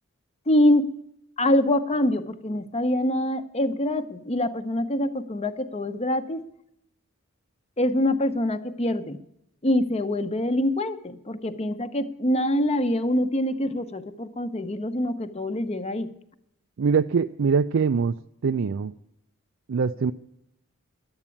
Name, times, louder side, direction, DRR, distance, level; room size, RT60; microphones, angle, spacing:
voice 1, 0.5-0.9 1.4-6.4 7.8-9.2 9.6-16.1, left 1 dB, 30° left, 10 dB, 0.9 m, -25 dB
voice 2, 16.8-18.2 18.4-18.9 19.7-20.1, right 5 dB, 65° right, 9 dB, 0.4 m, -23 dB
12.0 x 8.9 x 8.4 m, 0.77 s
head